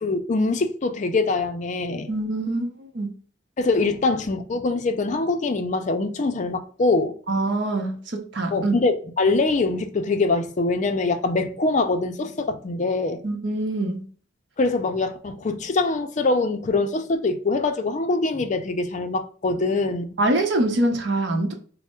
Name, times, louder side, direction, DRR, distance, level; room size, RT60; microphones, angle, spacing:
voice 1, 0.0-2.1 3.6-7.2 8.5-13.2 14.6-20.1, left 3 dB, 40° left, 0.4 m, -23 dB
voice 2, 2.1-3.1 7.3-8.7 13.2-14.1 20.2-21.5, right 2 dB, 70° right, 0.8 m, -24 dB
3.3 x 2.1 x 4.2 m
head